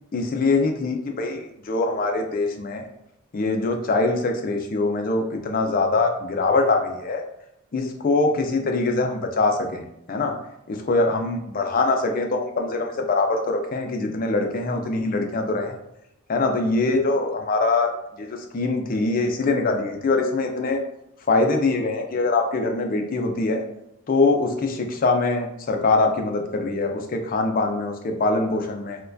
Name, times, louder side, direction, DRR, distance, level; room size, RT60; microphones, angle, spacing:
voice 1, 0.1-2.9 3.3-7.2 7.7-9.8 10.1-10.4 10.7-15.8 16.3-17.9 18.2-20.8 21.3-23.6 24.1-29.0, left 3 dB, 40° left, 4 dB, 0.4 m, -23 dB
4.2 x 2.2 x 2.6 m, 0.80 s
head